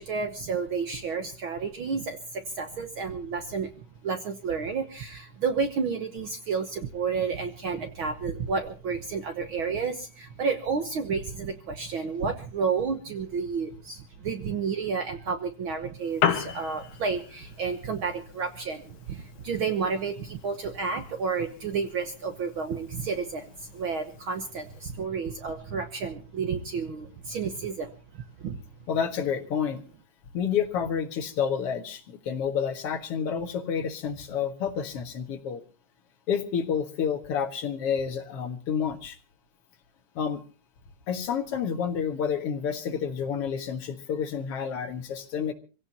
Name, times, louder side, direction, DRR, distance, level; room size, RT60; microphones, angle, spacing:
voice 1, 0.0-3.7 4.0-28.6, right 5 dB, 60° right, 6 dB, 1.4 m, -31 dB
Piano, 16.0-24.9, left 8 dB, 80° left, 2.7 m, -36 dB
voice 2, 28.9-29.8 30.3-35.6 36.3-39.2 40.2-40.4 41.1-45.5, left 7 dB, 55° left, 5 dB, 2.4 m, -29 dB
25.5 x 16.5 x 2.8 m, 0.35 s
omnidirectional pair, 3.4 m